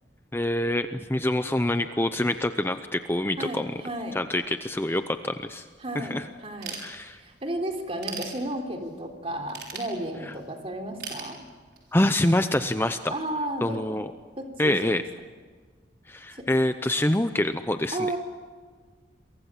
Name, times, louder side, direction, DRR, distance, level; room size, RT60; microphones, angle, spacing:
voice 1, 0.3-3.7 4.1-5.6 5.9-6.2 6.8-7.2 11.9-13.1 13.6-14.1 14.6-15.0 16.1-18.0, left 1 dB, 15° left, 9 dB, 0.7 m, -25 dB
voice 2, 3.4-4.2 5.8-6.8 7.0-11.4 13.1-13.8 14.4-15.0 16.3-16.5 17.9-18.2, right 1 dB, 35° right, 3 dB, 3.5 m, -33 dB
Ratchet pawl / Tools, 6.6-7.4 7.8-8.9 9.5-10.5 11.0-12.0, right 6 dB, 65° right, 6.5 m, -38 dB
29.0 x 23.5 x 7.4 m, 1.5 s
head